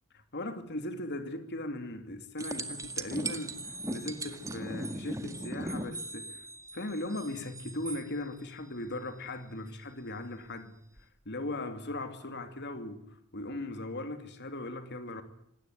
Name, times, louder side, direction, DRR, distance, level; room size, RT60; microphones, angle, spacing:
voice 1, 0.1-6.4 6.7-10.8 11.2-15.2, left 1 dB, 50° left, 3.0 m, -38 dB
sound 1, 2.4-8.0 11.0-11.1, right 2 dB, 15° right, 1.9 m, -39 dB
26.5 x 20.0 x 9.4 m
head